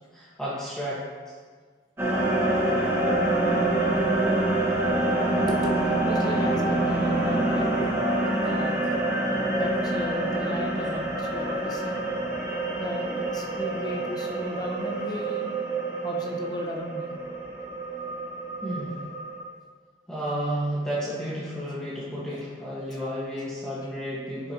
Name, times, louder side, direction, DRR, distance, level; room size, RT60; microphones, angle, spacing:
voice 1, 0.1-1.0 18.6-19.0 20.1-24.5, equal, 5° left, -9 dB, 1.4 m, -32 dB
sound 1, 2.0-19.4, right 2 dB, 15° right, 1.5 m, -26 dB
voice 2, 4.7-7.9 8.4-8.8 9.6-12.1 12.6-15.5 16.0-17.1 21.7-21.8, left 1 dB, 20° left, 0 dB, 0.9 m, -35 dB
10.5 x 6.5 x 2.9 m, 1.5 s
head